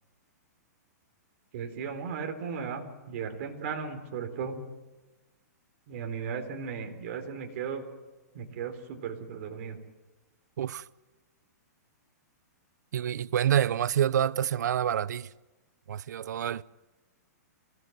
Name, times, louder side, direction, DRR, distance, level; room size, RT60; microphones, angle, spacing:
voice 1, 1.5-4.6 5.9-7.8 8.3-9.8, right 6 dB, 45° right, 3.8 m, -36 dB
voice 2, 12.9-15.3 15.9-16.6, right 10 dB, 75° right, 0.7 m, -27 dB
26.5 x 17.0 x 7.9 m
hypercardioid pair, 165°, 9 cm